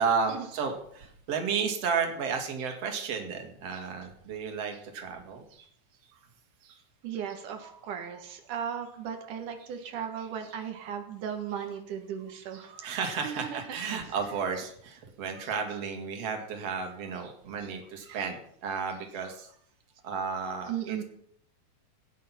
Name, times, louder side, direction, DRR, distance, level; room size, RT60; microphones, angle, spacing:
voice 1, 0.0-5.7 6.6-6.8 10.4-10.6 12.5-19.5 20.0-21.0, right 5 dB, 55° right, 4 dB, 3.1 m, -33 dB
voice 2, 7.0-13.6 13.9-14.0 18.1-18.2 20.7-21.0, right 8 dB, 85° right, 5 dB, 3.0 m, -36 dB
17.0 x 10.0 x 5.9 m, 0.66 s
omnidirectional pair, 3.5 m